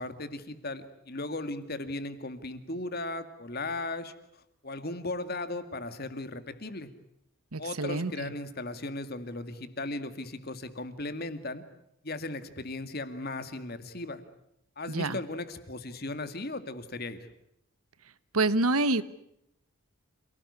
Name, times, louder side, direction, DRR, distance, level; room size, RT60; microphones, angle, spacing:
voice 1, 0.0-4.1 4.6-6.9 7.6-11.6 12.0-14.2 14.8-17.2, left 2 dB, 45° left, 10 dB, 2.1 m, -37 dB
voice 2, 7.5-8.3 14.9-15.1 18.3-19.0, right 2 dB, 80° right, 15 dB, 1.2 m, -27 dB
28.0 x 18.5 x 9.8 m, 0.79 s
head